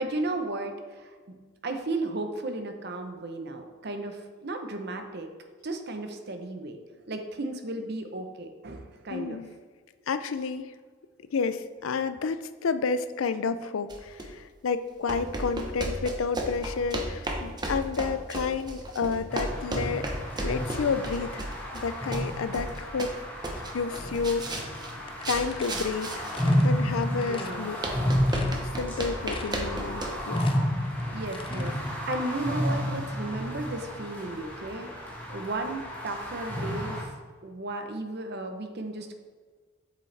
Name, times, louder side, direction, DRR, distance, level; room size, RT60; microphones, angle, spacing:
voice 1, 0.0-1.4 1.6-5.3 5.6-6.8 7.1-9.4 21.4-21.5 27.2-27.7 30.9-31.7 32.1-34.9 35.3-37.1 37.4-39.2, right 2 dB, 55° right, 6 dB, 0.8 m, -34 dB
voice 2, 9.1-9.5 10.1-10.7 11.3-20.1 20.4-23.1 23.7-24.7 25.3-27.8 28.6-30.5, left 5 dB, 85° left, 12 dB, 0.4 m, -30 dB
sound 1, 13.9-14.3 15.1-23.2 23.4-26.6 27.0-27.1 27.8-30.2, right 1 dB, 20° right, 0.8 m, -34 dB
sound 2, 19.3-37.0, equal, 10° left, 1.5 m, -31 dB
sound 3, 25.1-26.7 27.2-27.6 28.0-28.1 28.3-28.9 29.3-29.7 30.0-31.7, left 4 dB, 25° left, 0.5 m, -44 dB
8.1 x 6.8 x 3.3 m, 1.5 s
head